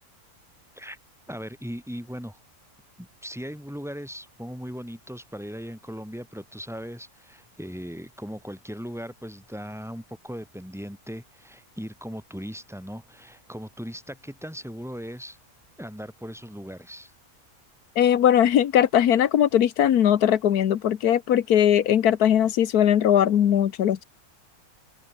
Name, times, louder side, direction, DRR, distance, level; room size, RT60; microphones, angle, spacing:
voice 1, 1.3-2.4 3.0-15.4 15.8-17.1, equal, ahead, 7.5 m, -38 dB
voice 2, 18.0-24.0, left 10 dB, 90° left, 1.5 m, -20 dB
omnidirectional pair, 1.6 m